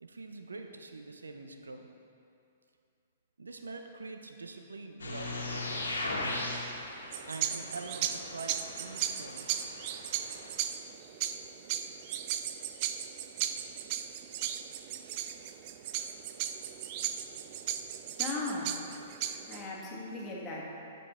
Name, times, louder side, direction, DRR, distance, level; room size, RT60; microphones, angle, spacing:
voice 1, 0.0-1.9 3.4-5.8 7.3-9.6, right 3 dB, 90° right, 5 dB, 0.6 m, -44 dB
sound 1, 5.0-10.5, left 2 dB, 85° left, 1.4 m, -39 dB
sound 2, 7.1-19.7, right 10 dB, 45° right, 0.4 m, -36 dB
voice 2, 18.2-18.7 19.5-20.7, left 3 dB, 25° left, -3 dB, 1.7 m, -37 dB
9.8 x 5.3 x 4.3 m, 2.6 s
hypercardioid pair, 125°, 0 cm